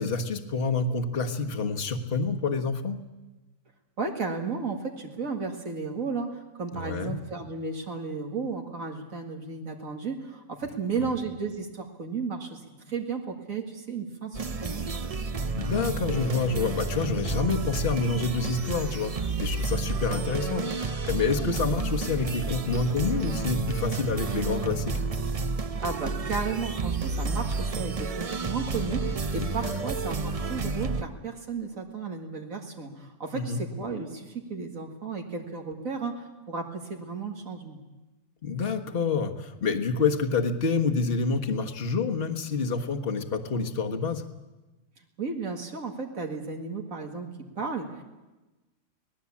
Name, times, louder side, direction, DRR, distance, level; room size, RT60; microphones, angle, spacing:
voice 1, 0.0-3.0 6.7-7.2 11.0-11.1 15.5-25.0 29.6-29.8 33.3-33.6 38.4-44.2, left 4 dB, 45° left, 5 dB, 1.6 m, -28 dB
voice 2, 4.0-12.6 12.9-15.0 25.8-37.8 45.2-47.3 47.6-48.0, right 4 dB, 80° right, 2 dB, 2.5 m, -34 dB
sound 1, 14.3-31.0, right 4 dB, 30° right, 0.8 m, -30 dB
25.5 x 18.5 x 8.5 m, 1.1 s
omnidirectional pair, 1.4 m